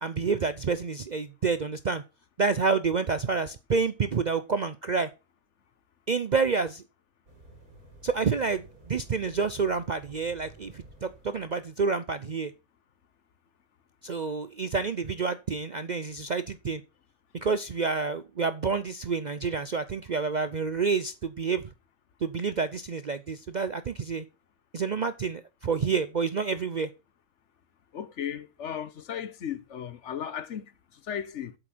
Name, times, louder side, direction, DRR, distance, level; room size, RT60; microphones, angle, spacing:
voice 1, 0.0-2.0 2.4-5.1 6.1-6.8 8.0-12.5 14.0-16.8 17.4-21.6 22.2-24.2 24.7-26.9, right 5 dB, 55° right, 0.5 m, -28 dB
sound 1, 7.3-11.7, right 2 dB, 80° right, 3.8 m, -52 dB
voice 2, 27.9-31.6, left 9 dB, 60° left, 1.2 m, -36 dB
8.0 x 7.9 x 6.1 m
omnidirectional pair, 1.5 m